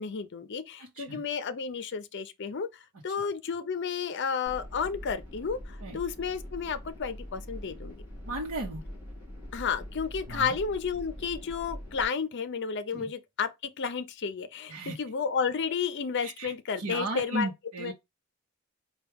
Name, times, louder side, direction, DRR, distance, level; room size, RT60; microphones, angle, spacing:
voice 1, 0.0-2.7 3.0-8.0 9.5-17.5 17.8-17.9, left 6 dB, 55° left, 0.5 m, -32 dB
voice 2, 0.8-1.2 5.8-6.0 8.2-8.8 10.3-10.6 12.9-13.1 14.7-15.0 16.2-17.9, right 2 dB, 75° right, 0.9 m, -35 dB
sound 1, 4.4-12.0, equal, 10° right, 2.3 m, -43 dB
4.6 x 2.3 x 3.5 m
head